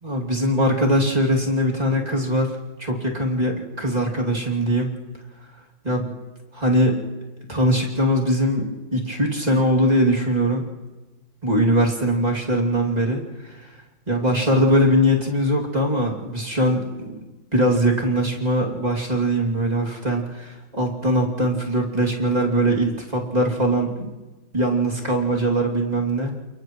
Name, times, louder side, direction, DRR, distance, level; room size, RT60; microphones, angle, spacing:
voice 1, 0.0-4.9 5.8-6.1 6.5-7.0 7.5-10.7 11.4-13.7 14.1-17.1 17.5-23.9 24.5-26.3, equal, 20° right, -2 dB, 2.6 m, -21 dB
29.5 x 29.0 x 3.1 m, 1.2 s
omnidirectional pair, 2.2 m